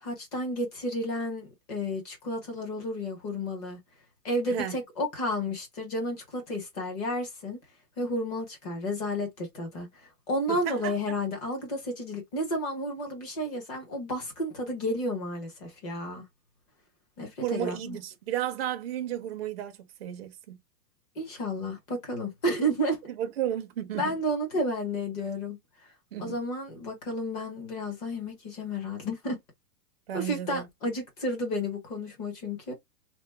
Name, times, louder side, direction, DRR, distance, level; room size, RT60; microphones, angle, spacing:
voice 1, 0.0-3.8 4.2-7.6 8.0-9.9 10.3-16.2 17.2-18.0 21.2-23.0 23.9-25.6 26.2-29.4 30.1-32.7, equal, 25° left, 0.8 m, -31 dB
voice 2, 10.5-10.9 17.4-20.6 23.1-24.2 26.1-26.4 30.1-30.7, right 11 dB, 40° right, 0.5 m, -33 dB
2.9 x 2.0 x 3.2 m
supercardioid pair, 170°, 48 cm